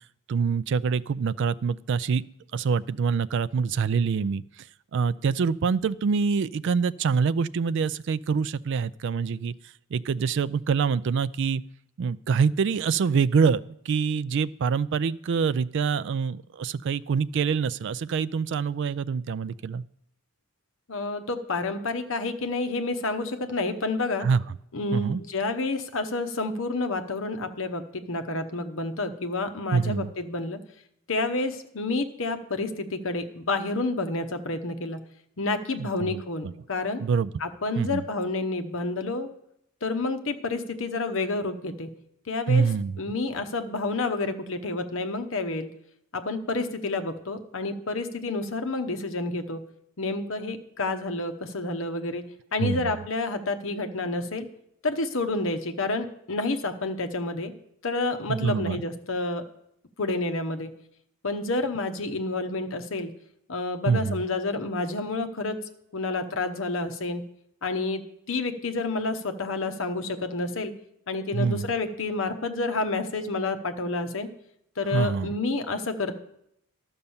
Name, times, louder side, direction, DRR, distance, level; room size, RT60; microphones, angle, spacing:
voice 1, 0.3-2.2 2.5-4.4 4.9-9.5 9.9-11.6 12.0-19.8 24.2-24.4 24.9-25.2 29.7-30.1 35.8-36.5 37.0-37.3 37.8-38.0 42.5-43.0 52.6-52.9 58.3-58.8 63.9-64.2 71.3-71.7 74.9-75.3, right 5 dB, 55° right, 17 dB, 0.3 m, -25 dB
voice 2, 20.9-24.3 24.7-30.6 31.1-35.0 35.4-37.0 37.4-39.3 39.8-41.9 42.3-42.7 43.0-45.7 46.1-49.6 50.0-52.2 52.5-54.5 54.8-57.5 57.8-59.4 60.0-60.7 61.2-63.1 63.5-65.6 65.9-67.2 67.6-68.0 68.3-70.7 71.1-74.3 74.8-76.1, left 3 dB, 60° left, 7 dB, 0.9 m, -29 dB
12.0 x 5.4 x 7.1 m, 0.76 s
head